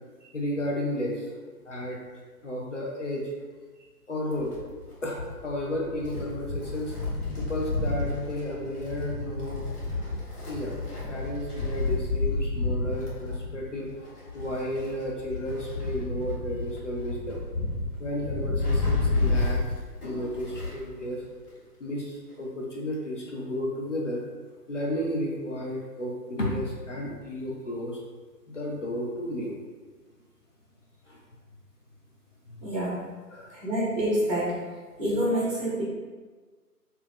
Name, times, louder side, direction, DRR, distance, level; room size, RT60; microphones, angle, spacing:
voice 1, 0.3-1.3 1.7-3.3 4.1-4.5 5.0-6.9 7.4-9.7 10.5-10.8 11.1-17.4 18.0-19.6 20.0-21.2 21.8-24.2 24.7-28.0 28.5-29.5 31.1-31.2 33.3-33.6, left 1 dB, 50° left, -3 dB, 0.6 m, -33 dB
Wind, 4.3-20.9 21.2-21.3 22.3-22.4, left 3 dB, 65° left, 1.3 m, -31 dB
voice 2, 32.6-33.0 33.5-34.6 35.0-35.8, equal, 25° right, -7 dB, 0.8 m, -27 dB
2.8 x 2.1 x 3.5 m, 1.4 s
figure-of-eight pair, 145°, 49 cm